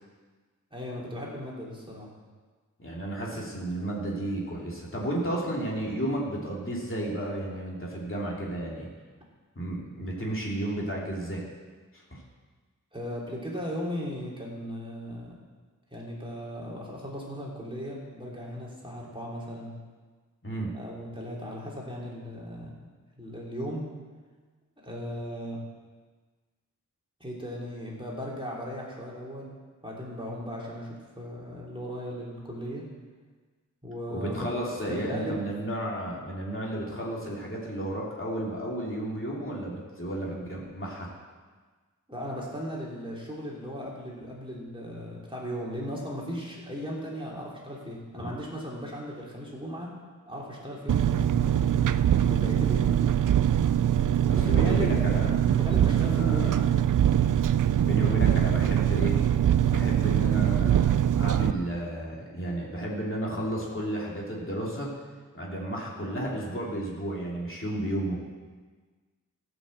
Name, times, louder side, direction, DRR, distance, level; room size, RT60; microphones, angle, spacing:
voice 1, 0.7-2.1 12.9-15.3 15.9-19.8 20.7-22.8 23.2-23.9 24.8-25.6 27.2-29.5 29.8-32.8 33.8-34.6 34.9-35.4 42.1-49.9 50.3-51.9 52.2-53.0 54.4-55.0 55.5-56.8, equal, 15° right, -4 dB, 3.1 m, -37 dB
voice 2, 2.8-8.9 9.6-11.4 11.9-12.2 20.4-20.7 34.1-41.1 48.2-48.3 54.3-55.3 56.0-56.7 57.8-59.2 59.6-60.9 61.2-64.9 65.3-68.2, right 1 dB, 40° left, -4 dB, 2.7 m, -32 dB
Engine, 50.9-61.5, right 10 dB, 70° right, 0.5 m, -23 dB
15.0 x 6.2 x 7.7 m, 1.4 s
wide cardioid pair, 85°, 33 cm